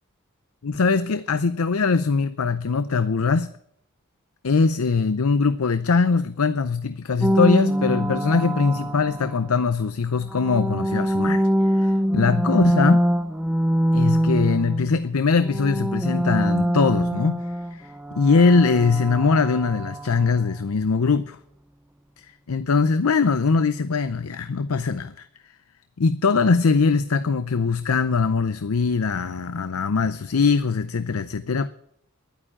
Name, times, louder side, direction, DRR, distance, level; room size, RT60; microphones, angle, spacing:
voice 1, 0.6-3.5 4.4-13.1 13.9-17.4 17.7-21.4 22.5-25.3 26.0-31.7, left 4 dB, 75° left, 0.6 m, -21 dB
sound 1, 7.2-9.6 10.2-15.1 15.4-20.3, equal, 5° right, 0.6 m, -24 dB
11.5 x 9.1 x 9.9 m
head